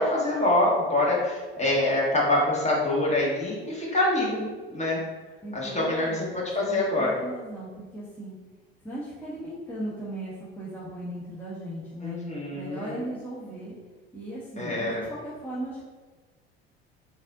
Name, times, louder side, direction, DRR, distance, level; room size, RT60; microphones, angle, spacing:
voice 1, 0.0-4.5 4.7-5.0 5.5-6.1 6.3-7.1 12.0-12.9 14.6-15.0, left 1 dB, 20° left, -4 dB, 1.5 m, -25 dB
voice 2, 5.4-8.4 8.8-12.2 12.5-13.7 14.1-15.9, right 1 dB, 5° left, -9 dB, 1.0 m, -37 dB
3.9 x 2.6 x 3.7 m, 1.4 s
hypercardioid pair, 70°, 31 cm